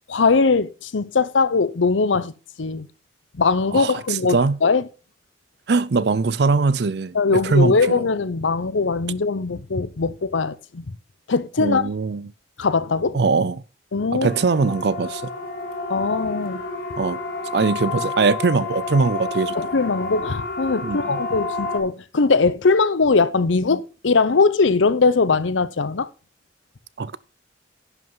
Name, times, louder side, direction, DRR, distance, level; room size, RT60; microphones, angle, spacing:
voice 1, 0.1-2.3 2.6-2.9 3.4-4.8 7.1-10.8 11.3-11.9 12.6-13.2 13.9-14.3 15.9-16.6 19.6-26.1, left 4 dB, 80° left, 0.7 m, -20 dB
voice 2, 3.7-4.6 5.7-7.2 7.4-8.0 11.6-12.3 13.1-13.6 14.1-15.3 17.0-17.2 17.5-19.6 20.8-21.2 27.0-27.2, right 4 dB, 60° right, 0.5 m, -21 dB
Siren, 14.2-21.8, left 3 dB, 55° left, 1.9 m, -30 dB
11.0 x 5.5 x 5.5 m
head